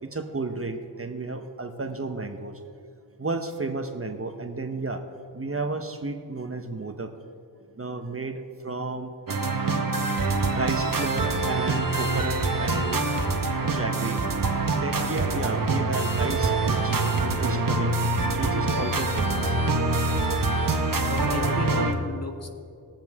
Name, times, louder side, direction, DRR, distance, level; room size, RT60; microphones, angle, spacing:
voice 1, 0.0-2.6 3.2-5.0 5.3-7.1 7.8-9.1 10.5-13.1 13.6-14.2 14.7-18.0 18.4-19.6, right 3 dB, 30° right, 6 dB, 1.1 m, -32 dB
sound 1, 9.3-21.9, right 3 dB, 50° right, 1.5 m, -25 dB
voice 2, 21.1-22.5, left 1 dB, 35° left, 3 dB, 1.7 m, -33 dB
21.0 x 7.3 x 3.7 m, 2.4 s
cardioid pair, 40°, 42 cm